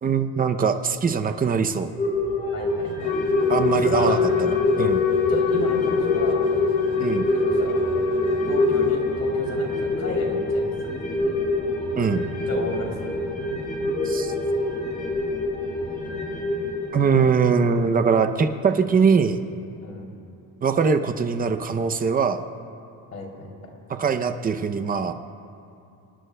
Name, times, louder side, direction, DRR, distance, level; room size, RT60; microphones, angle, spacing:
voice 1, 0.0-1.9 3.5-4.5 4.8-5.1 7.0-7.3 12.0-12.3 14.0-14.3 16.9-19.4 20.6-22.4 23.9-25.1, right 5 dB, 25° right, 8 dB, 0.6 m, -22 dB
sound 1, 2.0-18.8 19.1-19.2, left 2 dB, 20° left, 3.9 m, -26 dB
voice 2, 2.5-3.1 3.7-4.2 5.3-6.5 7.1-7.8 8.4-10.7 11.1-11.4 12.5-13.1 19.8-20.1 23.1-23.7, left 2 dB, 45° left, -1 dB, 3.2 m, -34 dB
Wind instrument woodwind instrument, 3.0-9.1, left 5 dB, 75° left, 1.2 m, -24 dB
26.5 x 19.0 x 2.2 m, 2.7 s
cardioid pair, 170°, 38 cm